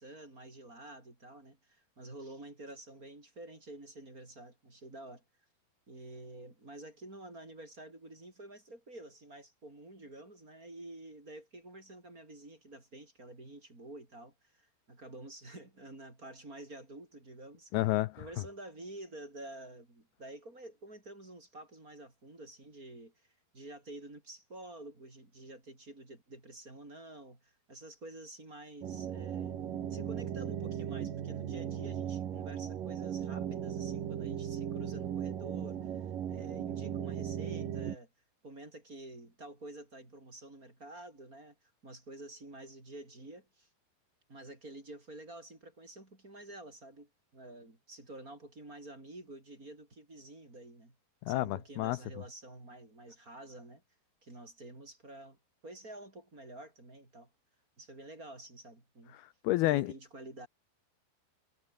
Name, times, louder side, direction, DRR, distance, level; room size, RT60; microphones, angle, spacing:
voice 1, 0.0-5.2 5.9-17.7 18.2-38.1 38.4-41.6 41.8-43.7 44.3-50.9 51.3-53.8 54.2-55.4 55.6-57.3 57.8-59.2 59.7-60.5, right 1 dB, 20° right, 4.9 m, -49 dB
voice 2, 17.7-18.2 51.2-52.0 59.1-59.9, left 17 dB, 80° left, 2.4 m, -30 dB
sound 1, 28.8-38.0, right 9 dB, 55° right, 3.4 m, -37 dB
omnidirectional pair, 5.1 m